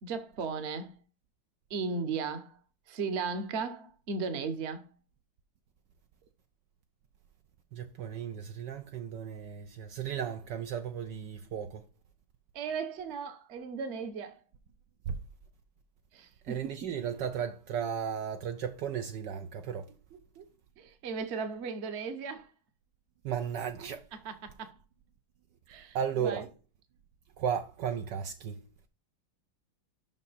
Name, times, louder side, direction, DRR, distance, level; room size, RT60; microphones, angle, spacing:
voice 1, 0.0-0.9 1.7-2.6 2.9-4.9 12.5-14.4 16.1-16.8 20.4-20.5 20.8-22.5 24.1-24.8 25.7-26.5, right 5 dB, 45° right, 1.0 m, -36 dB
voice 2, 7.7-11.8 15.1-15.2 16.4-19.9 23.2-24.1 25.9-26.5 27.4-28.6, right 8 dB, 70° right, 1.2 m, -35 dB
6.0 x 5.5 x 4.1 m
omnidirectional pair, 2.2 m